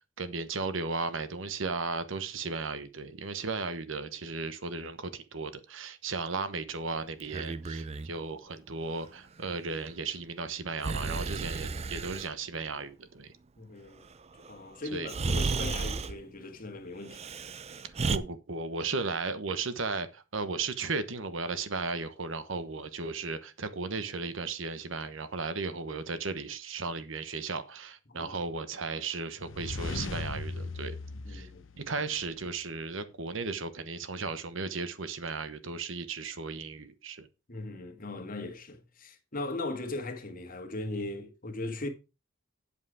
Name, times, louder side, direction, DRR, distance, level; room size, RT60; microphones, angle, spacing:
voice 1, 0.2-13.3 14.9-15.1 18.1-31.0 31.3-31.5 31.8-37.3, right 4 dB, 70° right, 1.1 m, -35 dB
Breathing, 7.2-8.1 10.8-12.3 14.4-14.5 15.1-16.2 17.1-18.2, right 4 dB, 30° right, 0.5 m, -33 dB
voice 2, 13.6-14.1 14.5-17.2 28.1-28.3 31.1-31.6 37.5-41.9, left 2 dB, 45° left, 1.7 m, -38 dB
sound 1, 29.4-32.4, left 3 dB, 70° left, 0.9 m, -38 dB
8.4 x 7.6 x 4.8 m
head